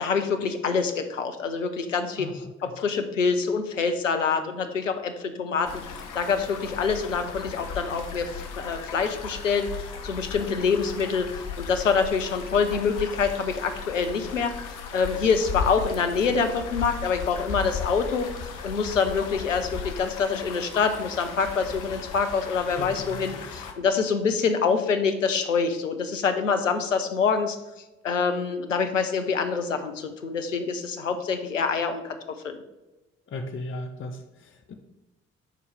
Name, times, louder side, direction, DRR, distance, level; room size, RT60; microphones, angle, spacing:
voice 1, 0.0-5.8 6.1-11.3 11.6-14.5 14.9-18.3 18.6-27.6 28.0-32.2 32.4-32.6, left 5 dB, 90° left, 7 dB, 0.6 m, -26 dB
voice 2, 2.2-2.5 22.8-23.4 33.3-34.7, left 2 dB, 35° left, 6 dB, 0.9 m, -36 dB
sound 1, 5.6-23.7, left 5 dB, 55° left, 1.0 m, -36 dB
10.5 x 4.5 x 3.5 m, 1.0 s
figure-of-eight pair, 45°, 37 cm